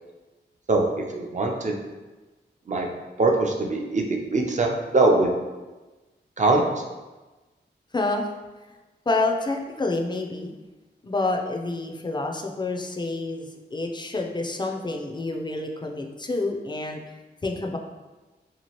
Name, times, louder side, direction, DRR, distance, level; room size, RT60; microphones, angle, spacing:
voice 1, 0.7-1.8 2.7-2.9 3.2-5.3 6.4-6.6, right 2 dB, 40° right, 1 dB, 0.5 m, -22 dB
voice 2, 7.9-8.3 9.1-10.5 11.0-17.0 17.4-17.8, left 2 dB, 25° left, 2 dB, 0.4 m, -28 dB
2.8 x 2.4 x 2.9 m, 1.2 s
cardioid pair, 50°, 19 cm